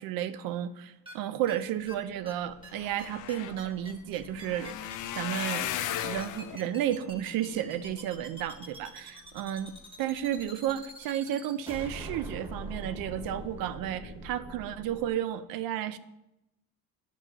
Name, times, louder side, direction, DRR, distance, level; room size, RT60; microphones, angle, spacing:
voice 1, 0.0-5.7 6.0-16.0, right 11 dB, 75° right, 13 dB, 0.6 m, -33 dB
sound 1, 1.1-1.2 1.5-1.6 1.9-2.0 2.3-2.4 2.6-2.7 3.0-15.1, right 1 dB, 15° right, 1.3 m, -43 dB
sound 2, 2.1-2.2 2.4-8.8 9.3-9.8 10.2-10.4 10.7-10.8, left 11 dB, 60° left, 0.5 m, -38 dB
10.5 x 6.9 x 3.0 m, 0.91 s
cardioid pair, 125°, 35 cm